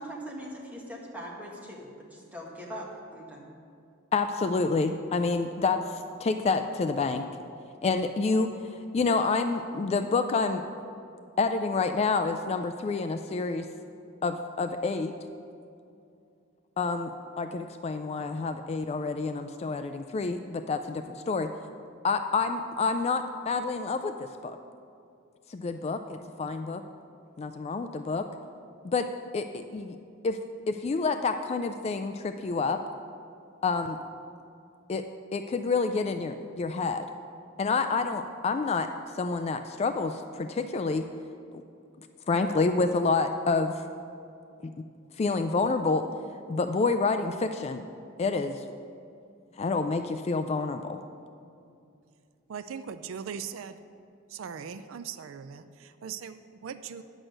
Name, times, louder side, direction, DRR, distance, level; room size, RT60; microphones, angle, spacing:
voice 1, 0.0-3.5, equal, 10° right, -3 dB, 1.6 m, -41 dB
voice 2, 4.1-7.3 7.8-10.6 11.4-13.7 14.2-15.1 16.8-21.5 22.0-24.6 25.5-26.8 27.4-28.3 28.8-29.1 29.3-30.0 30.2-30.4 30.7-32.8 33.6-34.0 34.9-35.1 35.3-37.0 37.6-38.9 39.2-41.1 42.3-43.8 44.6-44.7 45.2-46.1 46.5-47.8 48.2-48.6 49.6-51.0, left 4 dB, 30° left, 8 dB, 0.3 m, -28 dB
voice 3, 52.5-53.8 54.3-57.0, right 7 dB, 75° right, 11 dB, 0.4 m, -39 dB
10.0 x 6.3 x 6.4 m, 2.5 s
head